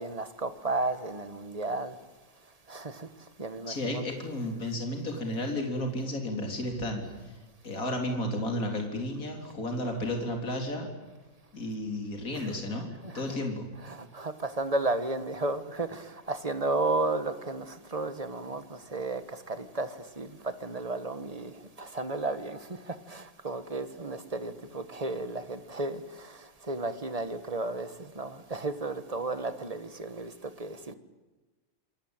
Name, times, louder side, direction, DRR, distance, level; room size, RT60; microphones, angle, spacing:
voice 1, 0.0-2.0 2.7-3.1 3.4-4.0 12.3-12.5 13.0-13.3 13.7-30.9, right 2 dB, 20° right, 1.5 m, -33 dB
voice 2, 3.7-7.4 7.6-10.9 11.5-13.7, left 1 dB, 45° left, 4.3 m, -33 dB
28.5 x 21.5 x 9.1 m
omnidirectional pair, 2.1 m